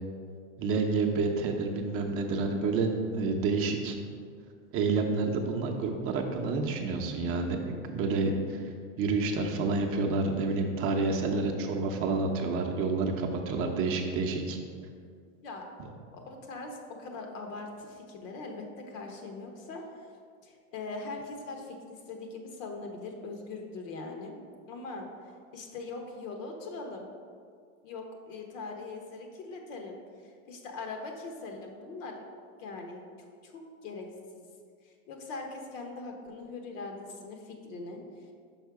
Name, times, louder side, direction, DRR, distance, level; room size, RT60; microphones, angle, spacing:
voice 1, 0.6-4.0 4.7-8.6 9.0-14.6, right 3 dB, 35° right, 2 dB, 0.6 m, -29 dB
voice 2, 16.3-20.1 20.4-24.4 24.7-27.1 27.8-32.2 32.6-34.1 34.3-34.5 34.8-38.2, left 3 dB, 70° left, 3 dB, 1.2 m, -41 dB
5.5 x 4.7 x 4.7 m, 2.1 s
supercardioid pair, 135°, 40 cm